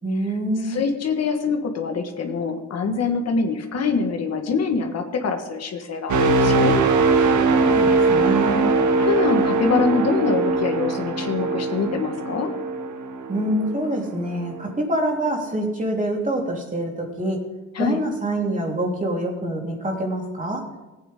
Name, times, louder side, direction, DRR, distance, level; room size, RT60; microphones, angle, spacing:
voice 1, 0.0-0.8 7.4-8.7 13.3-17.5 17.8-20.7, right 1 dB, 25° right, 0 dB, 3.2 m, -26 dB
voice 2, 0.6-6.7 7.8-8.0 9.0-12.5 17.7-18.0, left 5 dB, 55° left, 4 dB, 1.6 m, -24 dB
sound 1, 6.1-13.9 14.4-14.6, right 3 dB, 75° right, 1.5 m, -21 dB
16.5 x 9.2 x 3.7 m, 1.1 s
cardioid pair, 90°, 30 cm